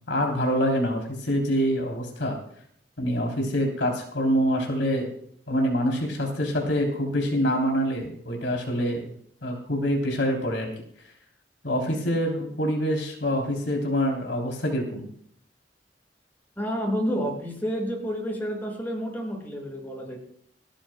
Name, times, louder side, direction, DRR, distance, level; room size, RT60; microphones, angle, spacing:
voice 1, 0.1-2.4 3.0-5.1 5.5-9.1 9.4-10.7 11.6-15.0, equal, 85° left, 1 dB, 3.2 m, -25 dB
voice 2, 16.6-20.2, equal, 10° left, -1 dB, 5.6 m, -30 dB
30.0 x 10.0 x 2.2 m, 0.66 s
head